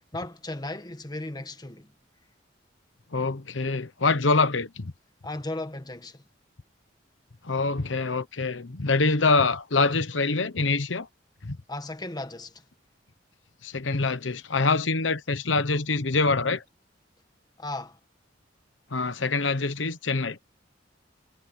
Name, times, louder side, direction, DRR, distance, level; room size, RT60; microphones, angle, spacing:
voice 1, 0.1-1.9 5.2-6.2 11.7-12.6 17.6-18.0, left 2 dB, 20° left, 1.4 m, -36 dB
voice 2, 3.1-4.9 7.4-11.1 11.4-11.6 13.6-16.6 18.9-20.4, left 3 dB, 85° left, 1.1 m, -25 dB
head